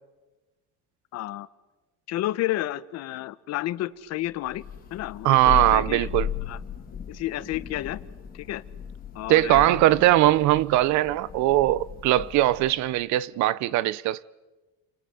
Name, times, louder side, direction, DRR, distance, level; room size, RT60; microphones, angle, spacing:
voice 1, 1.1-1.5 2.1-4.6 4.9-6.1 6.5-6.6 7.1-8.0 8.3-8.6 9.1-9.7, left 15 dB, 55° left, 1.2 m, -31 dB
Thunder, 4.5-12.9, left 8 dB, 30° left, 3.8 m, -36 dB
voice 2, 5.2-6.3 9.3-14.2, right 15 dB, 65° right, 0.9 m, -20 dB
28.5 x 28.0 x 7.1 m
cardioid pair, 155°, 31 cm